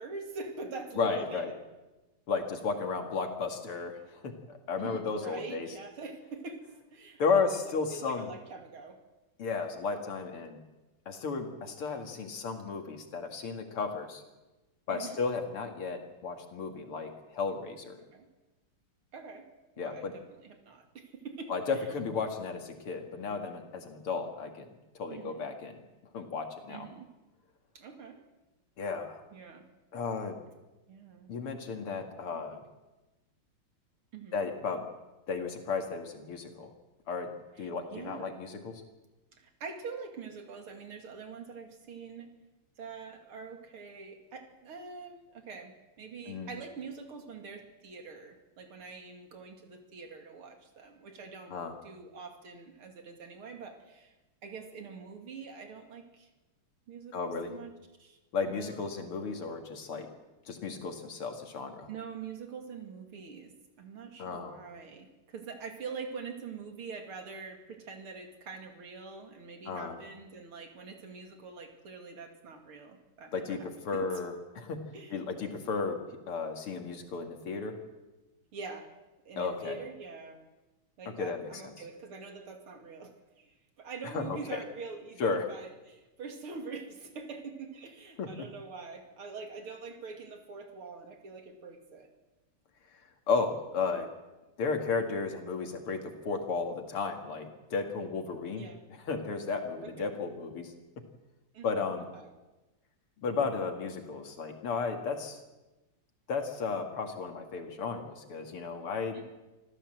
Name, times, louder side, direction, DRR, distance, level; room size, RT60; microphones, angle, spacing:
voice 1, 0.0-1.5 4.8-6.6 6.9-9.0 14.9-15.2 18.1-18.3 19.1-19.5 19.8-21.9 25.1-25.5 26.7-27.1 27.7-28.2 29.3-29.7 30.9-31.3 32.3-32.4 34.1-34.4 37.6-38.5 39.3-42.3 42.8-51.5 51.8-54.1 54.4-56.3 56.9-57.7 58.0-58.2 58.4-59.1 61.9-63.5 63.8-74.2 74.9-75.2 78.5-78.9 79.2-80.4 81.0-92.1 98.6-98.9 99.8-100.1 101.5-101.7 102.1-102.3 109.1-109.2, right 5 dB, 75° right, 4 dB, 3.4 m, -44 dB
voice 2, 1.0-1.5 2.3-5.7 7.2-8.3 9.4-10.6 11.1-14.2 14.9-18.0 19.8-20.1 21.5-24.7 24.9-25.7 26.1-26.9 28.8-29.2 29.9-30.4 31.3-32.6 34.3-34.9 35.3-36.7 37.1-37.3 37.6-38.8 46.3-46.5 51.5-51.8 57.1-57.5 58.3-60.1 60.5-61.9 64.2-64.5 69.7-70.0 73.3-74.8 75.1-76.0 76.3-77.7 79.4-79.8 81.2-81.7 84.0-84.6 85.2-85.5 88.2-88.3 93.3-94.1 94.6-98.6 99.1-100.7 101.6-102.1 103.2-105.4 106.3-109.2, left 4 dB, 80° left, 5 dB, 3.1 m, -34 dB
25.5 x 15.0 x 7.8 m, 1.1 s
omnidirectional pair, 2.4 m